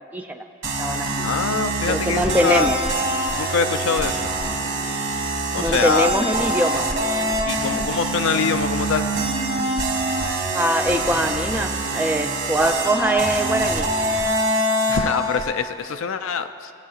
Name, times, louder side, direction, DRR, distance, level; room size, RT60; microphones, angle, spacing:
voice 1, 0.1-0.4 0.8-1.1 1.9-2.8 5.5-6.8 10.5-13.9, right 1 dB, 10° right, 5 dB, 0.3 m, -22 dB
sound 1, 0.6-15.4, right 1 dB, 55° right, 1.7 m, -24 dB
voice 2, 1.2-2.7 3.4-4.2 5.5-6.2 7.4-9.1 14.9-16.7, left 6 dB, 65° left, 9 dB, 0.4 m, -24 dB
19.0 x 8.6 x 2.4 m, 2.5 s
head